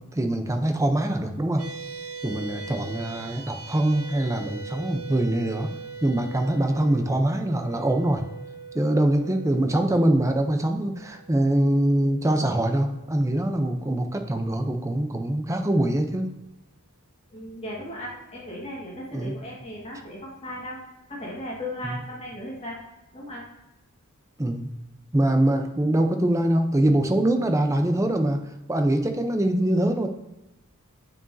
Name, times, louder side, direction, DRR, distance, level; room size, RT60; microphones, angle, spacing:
voice 1, 0.1-1.6 2.2-5.7 6.0-8.2 8.7-16.3 19.1-19.3 21.8-22.0 24.4-24.7 25.1-30.1, right 1 dB, 15° right, 6 dB, 0.5 m, -23 dB
sound 1, 1.6-14.2, right 5 dB, 80° right, 0.8 m, -42 dB
voice 2, 17.3-20.8 21.1-22.8 23.1-23.5, left 1 dB, 30° left, -4 dB, 1.7 m, -36 dB
8.8 x 4.7 x 2.6 m, 0.97 s
head